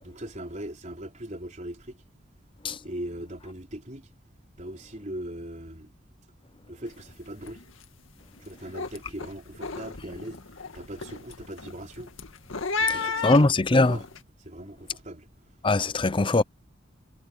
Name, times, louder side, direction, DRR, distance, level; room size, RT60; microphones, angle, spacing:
voice 1, 0.0-2.0 2.8-4.1 4.6-5.9 6.7-7.6 8.4-10.4 10.7-12.1 12.8-14.0 14.4-15.3 15.8-15.9, right 1 dB, 40° right, 4.0 m, -39 dB
sound 1, 6.9-7.1 7.4-7.8 8.2-14.2, left 4 dB, 85° left, 1.9 m, -34 dB
voice 2, 12.9-14.0 15.6-16.4, left 2 dB, 25° left, 0.6 m, -21 dB
head